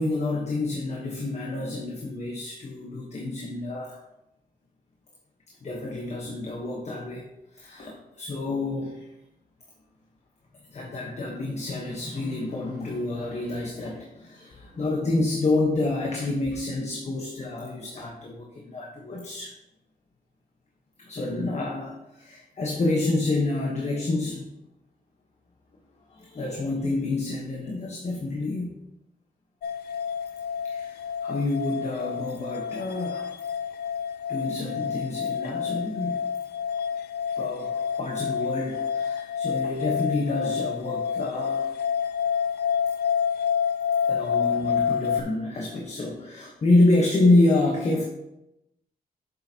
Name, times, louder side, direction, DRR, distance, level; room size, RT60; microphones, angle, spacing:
voice 1, 0.0-4.0 5.6-7.3 7.5-9.1 10.7-19.5 21.0-24.4 26.1-28.7 30.6-33.3 34.3-36.3 37.4-41.7 44.0-48.0, left 2 dB, 45° left, 0 dB, 1.2 m, -28 dB
sound 1, 29.6-45.2, left 7 dB, 85° left, 0.5 m, -28 dB
7.9 x 6.8 x 2.9 m, 0.89 s
cardioid pair, 100°, 16 cm